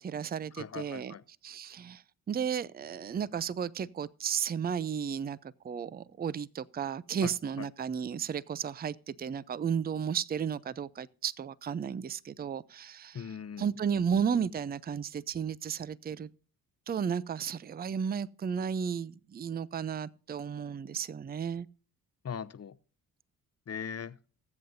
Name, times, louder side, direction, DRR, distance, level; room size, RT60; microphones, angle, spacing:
voice 1, 0.0-1.1 1.4-13.3 13.6-16.3 16.9-21.7, right 7 dB, 25° right, 0.5 m, -33 dB
voice 2, 0.6-1.2 7.2-7.7 13.1-13.7 22.2-22.8 23.7-24.2, left 7 dB, 35° left, 0.8 m, -40 dB
20.0 x 7.7 x 2.6 m
hypercardioid pair, 45°, 41 cm